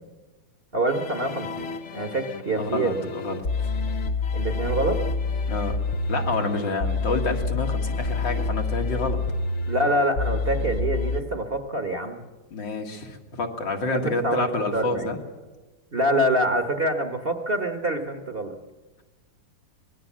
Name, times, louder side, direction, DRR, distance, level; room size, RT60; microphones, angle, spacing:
voice 1, 0.7-2.9 4.3-5.0 9.7-12.2 13.9-14.5 14.7-15.2 15.9-18.6, right 1 dB, 35° right, 6 dB, 1.3 m, -26 dB
sound 1, 0.9-11.2, left 3 dB, 50° left, 1.0 m, -28 dB
voice 2, 2.6-3.9 5.5-5.8 6.1-9.2 12.5-15.2, left 3 dB, 75° left, 2 dB, 2.8 m, -28 dB
24.5 x 19.5 x 7.4 m, 1.2 s
omnidirectional pair, 2.1 m